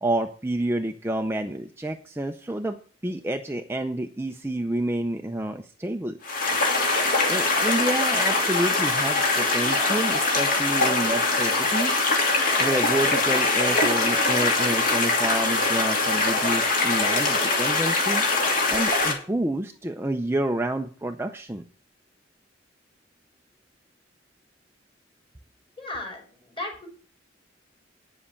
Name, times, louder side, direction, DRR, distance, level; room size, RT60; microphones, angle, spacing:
voice 1, 0.0-6.2 7.3-12.0 12.6-18.2 18.7-21.6, right 1 dB, 15° right, 5 dB, 0.5 m, -29 dB
sound 1, 6.2-19.1, left 3 dB, 45° left, 2.8 m, -23 dB
voice 2, 25.8-26.2 26.5-26.9, left 2 dB, 25° left, 1 dB, 4.6 m, -34 dB
9.9 x 7.5 x 7.0 m, 0.42 s
head